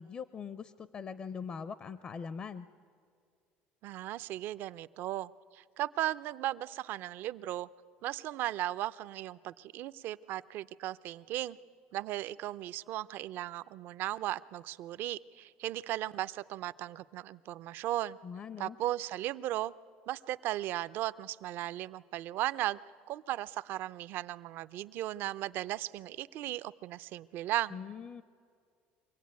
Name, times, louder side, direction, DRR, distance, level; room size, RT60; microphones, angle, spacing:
voice 1, 0.0-2.7 18.2-18.8 27.7-28.2, left 6 dB, 30° left, 15 dB, 0.5 m, -42 dB
voice 2, 3.8-7.7 8.0-11.6 11.9-18.2 18.6-19.7 20.1-22.8 23.1-27.8, right 14 dB, 55° right, 17 dB, 0.5 m, -36 dB
24.5 x 16.5 x 9.5 m, 2.2 s
cardioid pair, 140°, 4 cm